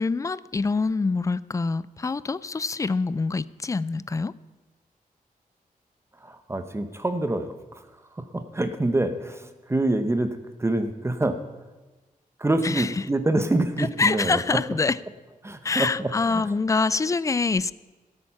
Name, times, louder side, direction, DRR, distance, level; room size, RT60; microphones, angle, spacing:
voice 1, 0.0-4.3 12.6-12.9 13.8-15.0 15.6-17.7, left 4 dB, 20° left, 19 dB, 0.3 m, -25 dB
voice 2, 6.2-7.9 8.1-11.4 12.4-14.6 15.4-16.4, right 2 dB, 15° right, 9 dB, 0.9 m, -26 dB
17.0 x 8.8 x 5.8 m, 1.2 s
wide cardioid pair, 135°, 15 cm